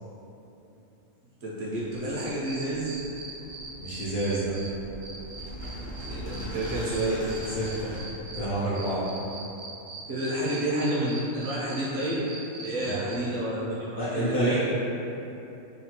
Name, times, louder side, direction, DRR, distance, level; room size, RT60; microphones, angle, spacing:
voice 1, 1.4-3.0 6.1-7.4 10.1-12.2 12.6-14.6, right 1 dB, 65° right, -7 dB, 0.8 m, -29 dB
sound 1, 1.7-8.6, equal, 80° left, 1.1 m, -41 dB
sound 2, 1.9-4.7 5.0-8.4 8.7-13.2, right 4 dB, 90° right, 1.1 m, -42 dB
voice 2, 3.8-4.6 7.6-8.0 8.3-9.1 12.8-13.0 13.9-14.6, right 1 dB, 65° left, -9 dB, 0.6 m, -29 dB
2.9 x 2.3 x 2.8 m, 2.9 s
omnidirectional pair, 1.3 m